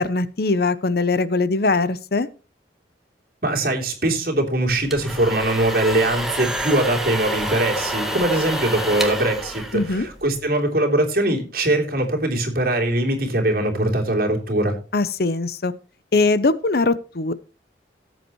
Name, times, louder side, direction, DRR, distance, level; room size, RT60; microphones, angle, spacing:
voice 1, 0.0-2.3 9.7-10.1 14.9-15.7 16.1-17.3, left 3 dB, 55° left, 17 dB, 0.7 m, -21 dB
voice 2, 3.4-14.8, right 1 dB, 55° right, 1 dB, 3.2 m, -21 dB
sound 1, 4.7-10.4, equal, ahead, 1.7 m, -28 dB
18.0 x 8.2 x 3.0 m, 0.35 s
head